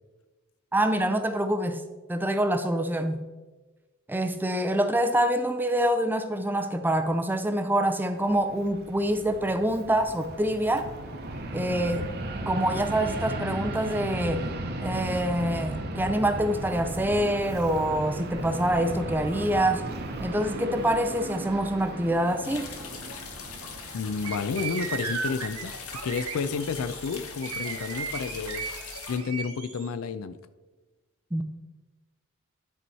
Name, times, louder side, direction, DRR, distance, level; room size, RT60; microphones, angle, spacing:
voice 1, 0.7-1.8 2.1-3.2 4.1-10.9 11.5-12.1 12.5-14.5 14.8-19.9 20.2-22.7 31.3-31.4, right 1 dB, 10° right, 0.4 m, -26 dB
Fixed-wing aircraft airplane, 8.2-26.0, right 1 dB, 50° right, 0.9 m, -36 dB
sound 1, 22.4-29.2, left 5 dB, 85° left, 1.0 m, -41 dB
voice 2, 23.9-28.7 29.1-30.4, left 5 dB, 70° left, 0.4 m, -31 dB
sound 2, 24.2-29.9, right 6 dB, 75° right, 1.2 m, -36 dB
11.0 x 4.6 x 4.1 m
head